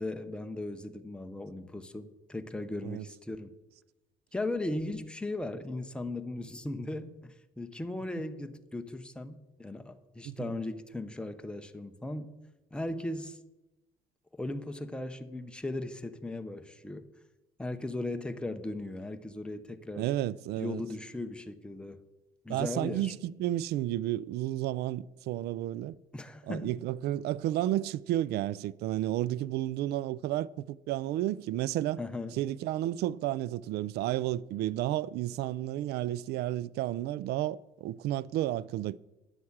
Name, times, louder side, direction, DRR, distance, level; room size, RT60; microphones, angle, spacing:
voice 1, 0.0-3.5 4.3-12.4 12.7-13.4 14.3-17.1 17.6-20.1 20.6-22.1 22.4-23.1 26.1-26.8 32.0-32.3, left 2 dB, 5° left, 0.8 m, -37 dB
voice 2, 20.0-20.8 22.5-26.0 26.5-32.0 32.4-39.0, right 14 dB, 75° right, 0.4 m, -32 dB
9.9 x 7.8 x 7.3 m
cardioid pair, 110°, 17 cm